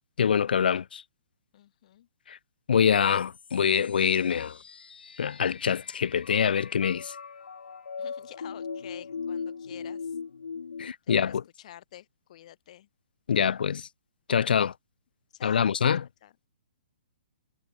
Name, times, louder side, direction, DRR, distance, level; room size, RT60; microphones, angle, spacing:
voice 1, 0.2-1.0 2.7-4.5 5.2-7.1 10.8-11.4 13.3-13.8 14.3-14.7 15.4-16.0, left 7 dB, 75° left, 0.7 m, -24 dB
voice 2, 1.5-2.1 8.0-10.2 11.0-12.9 15.3-15.8 16.2-16.4, left 12 dB, 45° left, 3.4 m, -49 dB
sound 1, 2.8-10.9, left 5 dB, 90° left, 3.5 m, -40 dB
hypercardioid pair, 160°, 5 cm